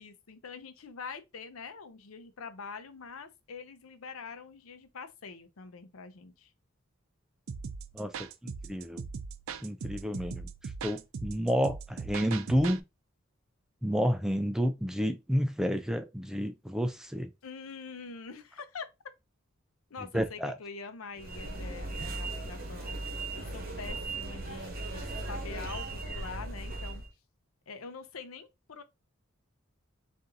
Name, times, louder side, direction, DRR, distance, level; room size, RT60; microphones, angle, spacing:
voice 1, 0.0-6.5 17.4-18.9 19.9-23.0 23.3-27.0 27.7-28.8, left 5 dB, 90° left, 0.7 m, -45 dB
sound 1, 7.5-12.8, right 5 dB, 75° right, 0.4 m, -40 dB
voice 2, 8.4-9.1 9.6-10.5 10.8-12.8 13.8-17.3 20.1-20.5, equal, 5° right, 0.3 m, -30 dB
sound 2, 21.2-27.1, right 2 dB, 45° right, 1.0 m, -38 dB
3.8 x 2.6 x 3.9 m
head